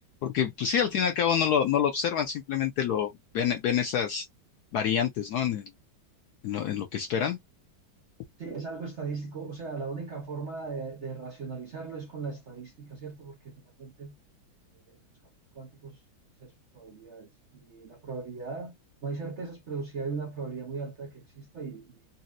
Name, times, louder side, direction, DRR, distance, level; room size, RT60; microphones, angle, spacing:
voice 1, 0.2-4.3 4.7-5.7 6.4-7.4, left 8 dB, 75° left, 0.9 m, -27 dB
voice 2, 8.4-14.2 14.9-15.0 15.5-16.0 16.4-18.7 19.0-22.0, right 4 dB, 55° right, 0.8 m, -38 dB
4.1 x 2.0 x 2.5 m
omnidirectional pair, 2.1 m